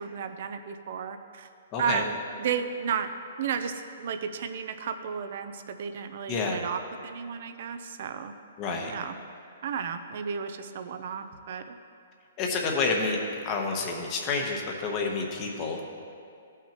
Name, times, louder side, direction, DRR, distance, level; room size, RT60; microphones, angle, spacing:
voice 1, 0.0-1.5 1.8-3.1 3.4-8.3 8.9-9.1 9.6-11.7, right 7 dB, 55° right, 9 dB, 0.5 m, -33 dB
voice 2, 1.7-2.0 6.3-6.6 8.6-8.9 12.4-16.0, left 4 dB, 25° left, 1 dB, 0.9 m, -29 dB
16.0 x 5.8 x 2.9 m, 2.4 s
hypercardioid pair, 160°, 0 cm